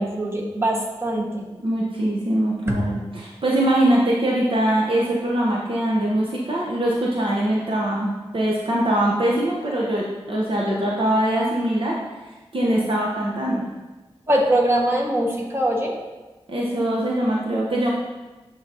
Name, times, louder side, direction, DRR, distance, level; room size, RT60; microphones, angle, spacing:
voice 1, 0.0-1.4 2.7-2.8 14.3-15.9, right 1 dB, 25° right, -1 dB, 1.4 m, -22 dB
voice 2, 1.6-12.0 12.5-13.6 16.5-17.9, right 1 dB, 55° right, -4 dB, 0.9 m, -22 dB
10.5 x 3.9 x 2.8 m, 1.2 s
cardioid pair, 55°, 11 cm